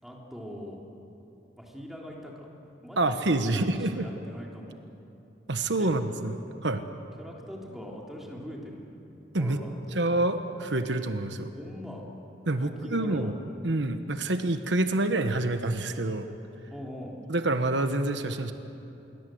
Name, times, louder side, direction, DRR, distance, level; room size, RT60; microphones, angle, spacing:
voice 1, 0.0-0.8 1.6-2.5 2.8-4.8 5.8-5.9 7.2-9.0 9.4-10.0 11.5-12.0 12.6-13.3 16.7-17.2, equal, ahead, -2 dB, 3.6 m, -42 dB
voice 2, 3.0-4.1 5.5-6.3 6.6-6.8 9.3-9.6 9.9-11.5 12.4-13.3 13.6-16.3 17.3-18.5, right 2 dB, 80° right, 8 dB, 1.2 m, -27 dB
27.0 x 23.0 x 7.9 m, 2.9 s
head